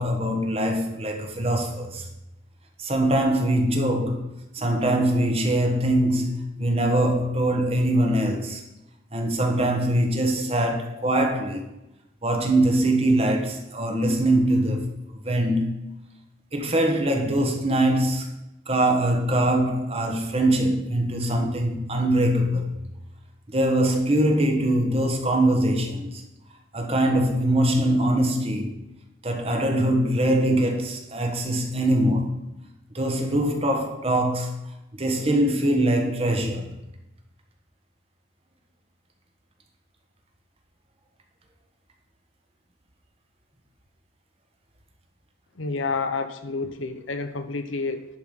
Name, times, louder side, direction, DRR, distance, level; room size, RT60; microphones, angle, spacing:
voice 1, 0.0-2.1 2.8-8.6 9.1-11.7 12.2-15.9 16.5-18.3 18.7-22.7 23.5-26.2 26.7-28.8 29.2-32.5 32.9-34.5 34.9-36.7, right 1 dB, 30° right, 1.4 m, -23 dB
voice 2, 45.6-48.1, left 4 dB, 90° left, 0.9 m, -29 dB
11.0 x 5.0 x 5.5 m
head